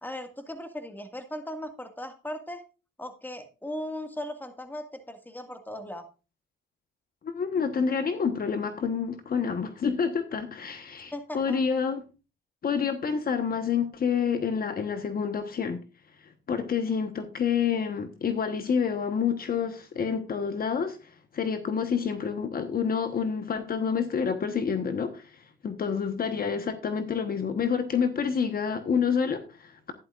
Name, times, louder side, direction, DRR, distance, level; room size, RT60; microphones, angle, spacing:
voice 1, 0.0-2.6 3.0-6.1 11.1-11.6, left 1 dB, 10° left, 2.0 m, -38 dB
voice 2, 7.2-12.0 12.6-15.8 16.2-29.9, left 6 dB, 50° left, 1.2 m, -28 dB
11.5 x 11.0 x 2.5 m
cardioid pair, 90°, 20 cm